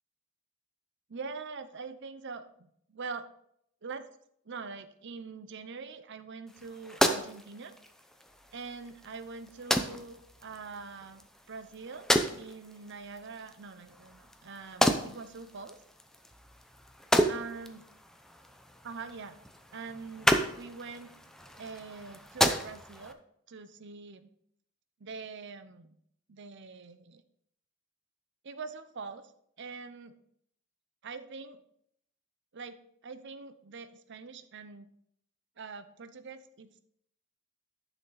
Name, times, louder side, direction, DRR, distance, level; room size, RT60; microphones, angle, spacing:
voice 1, 1.1-3.3 3.8-4.1 4.5-7.8 8.5-15.8 17.3-17.8 18.8-19.4 19.7-20.3 20.6-21.1 21.5-23.2 23.5-24.3 25.0-26.0 26.3-27.2 28.4-29.3 29.6-30.1 31.0-31.6 32.5-32.8 33.0-34.9 35.6-36.8, right 4 dB, 55° right, 11 dB, 0.7 m, -44 dB
sound 1, 6.5-23.1, equal, ahead, 0.6 m, -33 dB
10.5 x 6.3 x 4.0 m, 0.71 s
head